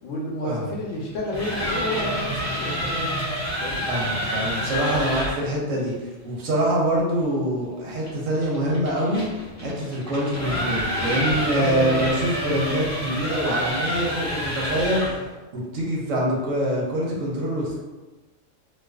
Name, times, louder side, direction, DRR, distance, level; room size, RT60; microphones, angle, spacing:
voice 1, 0.0-3.2 3.6-3.9 4.9-5.2 11.1-12.0, left 1 dB, 90° left, -2 dB, 1.0 m, -30 dB
sound 1, 1.1-5.4 8.0-15.3, equal, 20° left, 0.5 m, -28 dB
voice 2, 3.9-9.2 9.6-15.0 15.5-17.8, right 1 dB, 85° right, -3 dB, 1.0 m, -25 dB
2.4 x 2.3 x 2.2 m, 1.2 s
omnidirectional pair, 1.3 m